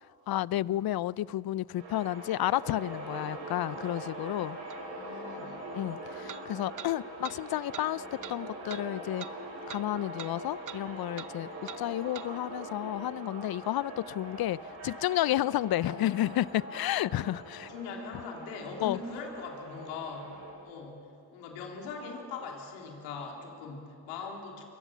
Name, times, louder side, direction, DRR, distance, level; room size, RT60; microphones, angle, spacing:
voice 1, 0.3-4.6 5.7-9.3 9.7-11.5 11.8-14.6 14.8-17.7 18.8-19.0, left 14 dB, 55° left, 0.6 m, -31 dB
sound 1, 1.8-20.5, right 1 dB, 80° right, 7.9 m, -43 dB
sound 2, 4.7-4.8 6.3-6.4 6.8-6.9 7.2-7.4 7.7-7.9 8.2-8.4 8.7-8.8 9.2-9.3 9.7-9.8 10.2-10.3 10.7-10.8 11.2-11.3 11.7-11.8 12.1-12.3, right 9 dB, 45° right, 0.9 m, -43 dB
voice 2, 4.8-5.5 17.5-21.0 21.3-24.6, left 4 dB, 90° left, 3.5 m, -41 dB
27.0 x 22.0 x 7.4 m
hypercardioid pair, 50°, 43 cm